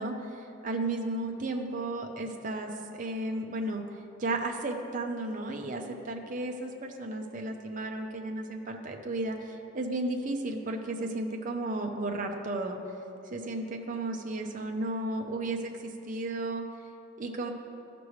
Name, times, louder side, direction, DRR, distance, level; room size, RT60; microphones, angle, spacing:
voice 1, 0.0-3.8 4.2-12.8 13.3-16.6 17.2-17.5, right 2 dB, 40° right, 3 dB, 0.6 m, -34 dB
13.5 x 6.0 x 3.2 m, 2.8 s
head